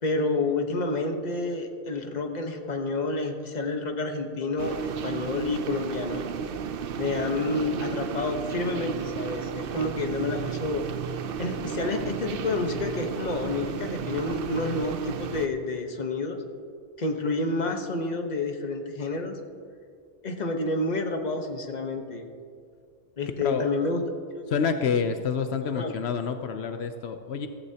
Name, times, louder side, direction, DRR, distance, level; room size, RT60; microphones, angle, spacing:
voice 1, 0.0-6.2 7.0-10.8 11.4-16.4 17.0-19.4 20.2-22.3 23.2-24.0 24.3-24.5 25.7-25.9, left 2 dB, 45° left, 4 dB, 1.2 m, -29 dB
sound 1, 4.6-15.5, right 7 dB, 65° right, 0.8 m, -33 dB
voice 2, 24.5-27.5, left 6 dB, 80° left, 7 dB, 1.0 m, -28 dB
15.5 x 14.5 x 2.9 m, 2.3 s
omnidirectional pair, 1.1 m